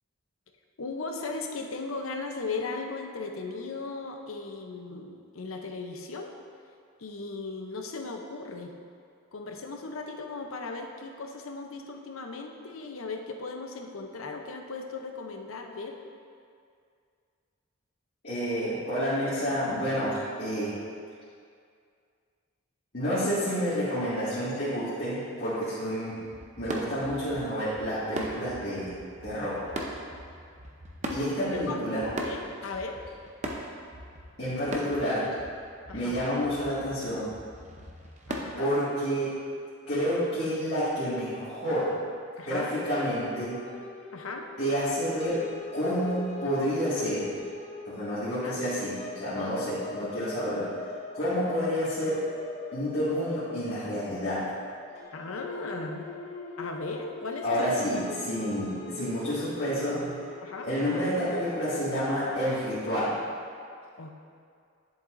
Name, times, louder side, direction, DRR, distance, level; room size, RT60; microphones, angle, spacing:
voice 1, 0.8-6.3 7.0-8.7 9.3-16.0 31.5-31.8 32.2-33.0 35.9-36.2 38.3-38.7 42.4-42.7 44.1-44.5 48.4-48.6 49.4-49.6 55.1-56.1 56.6-57.7 60.4-60.7 64.0-64.1, left 3 dB, 85° left, 3 dB, 0.7 m, -37 dB
voice 2, 18.2-20.8 22.9-26.2 26.6-28.9 29.2-29.6 31.1-32.1 34.4-35.3 35.9-37.3 38.6-39.4 39.9-41.9 42.5-43.6 44.6-45.4 45.7-47.3 47.8-50.7 51.1-52.2 52.7-54.5 57.4-60.2 60.6-63.2, equal, 50° left, -13 dB, 2.0 m, -29 dB
sound 1, 26.2-38.5, right 1 dB, 35° right, 0.7 m, -40 dB
sound 2, 42.5-62.4, left 3 dB, 30° left, 0.8 m, -41 dB
10.5 x 7.1 x 2.6 m, 2.3 s
head